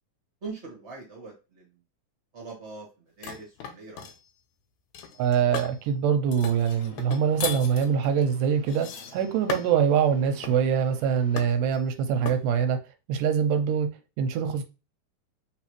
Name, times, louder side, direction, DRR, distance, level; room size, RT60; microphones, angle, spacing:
voice 1, 0.4-1.8 2.3-2.9 3.2-4.1, right 4 dB, 35° right, 1.1 m, -42 dB
sound 1, 3.2-4.2 4.9-5.8 6.3-9.9 10.4-10.7 11.4-11.8 12.3-12.5, left 7 dB, 75° left, 2.0 m, -37 dB
voice 2, 5.2-12.8 13.1-13.9 14.2-14.6, right 7 dB, 90° right, 2.2 m, -24 dB
sound 2, 6.3-11.4, left 3 dB, 60° left, 1.6 m, -51 dB
4.1 x 4.0 x 3.1 m
omnidirectional pair, 3.8 m